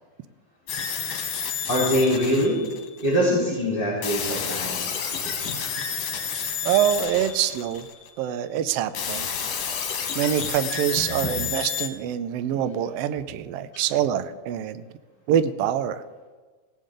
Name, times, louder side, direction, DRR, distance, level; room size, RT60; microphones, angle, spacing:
sound 1, 0.7-3.3 4.0-8.1 8.9-11.9, left 7 dB, 65° left, 2.2 m, -30 dB
voice 1, 1.7-2.6 3.0-5.0 5.4-5.6 9.8-10.1 11.0-11.3 13.7-13.8, equal, 15° left, -7 dB, 3.4 m, -24 dB
voice 2, 6.6-7.9 8.2-9.3 10.1-14.8 15.3-16.0, right 10 dB, 85° right, 12 dB, 1.3 m, -25 dB
17.5 x 9.1 x 3.8 m, 1.4 s
omnidirectional pair, 3.4 m